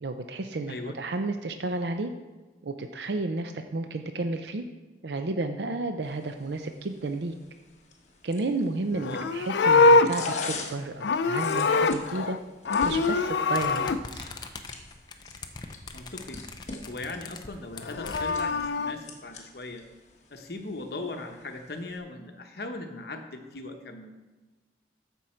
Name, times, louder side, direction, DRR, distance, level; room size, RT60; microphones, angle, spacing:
voice 1, 0.0-2.1 2.6-4.6 5.0-7.3 8.2-12.4 12.8-14.2, right 2 dB, 75° right, 7 dB, 0.5 m, -32 dB
voice 2, 0.7-1.0 9.0-9.2 15.9-16.4 16.9-19.8 20.3-24.1, left 2 dB, 60° left, 5 dB, 1.0 m, -39 dB
sound 1, 6.0-22.0, left 3 dB, 40° left, 1.2 m, -45 dB
Livestock farm animals working animals, 8.9-12.4 12.6-14.0 17.7-18.9, left 4 dB, 80° left, 0.4 m, -23 dB
sound 2, 13.5-18.7, left 3 dB, 25° left, 0.6 m, -42 dB
13.5 x 5.4 x 4.4 m, 1.2 s
head